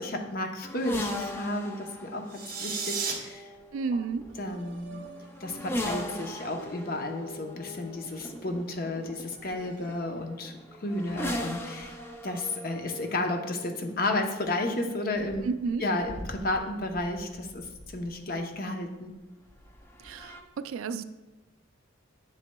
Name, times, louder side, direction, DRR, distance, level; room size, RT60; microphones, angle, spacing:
voice 1, 0.0-3.5 3.9-4.0 4.4-5.1 5.4-10.6 10.8-11.9 12.2-15.4 15.8-19.1, left 2 dB, 45° left, 4 dB, 0.7 m, -32 dB
sound 1, 0.6-18.4 19.5-20.4, left 1 dB, 10° left, 0.4 m, -40 dB
sound 2, 2.3-3.1, right 6 dB, 40° right, 0.9 m, -32 dB
voice 2, 3.7-4.3 15.4-15.8 20.0-21.0, right 4 dB, 80° right, 12 dB, 0.3 m, -31 dB
sound 3, 4.3-10.4, right 3 dB, 60° right, 1.8 m, -51 dB
8.2 x 6.6 x 2.2 m, 1.1 s
head